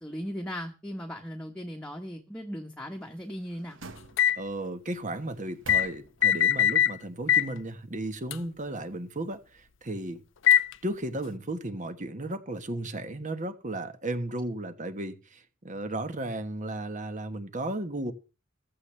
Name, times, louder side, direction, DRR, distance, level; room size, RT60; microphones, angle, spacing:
voice 1, 0.0-3.8, equal, 5° left, 1.3 m, -37 dB
Slamming a slide door, 2.9-4.6 5.2-6.5 6.8-6.9, right 3 dB, 70° right, 1.5 m, -48 dB
sound 1, 4.2-4.4 5.7-5.9 6.2-6.9 7.3-7.5 8.3-8.4 10.5-10.7, left 10 dB, 65° left, 0.6 m, -21 dB
voice 2, 4.4-10.2 10.8-18.1, right 1 dB, 40° right, 1.4 m, -34 dB
15.0 x 13.0 x 3.3 m
head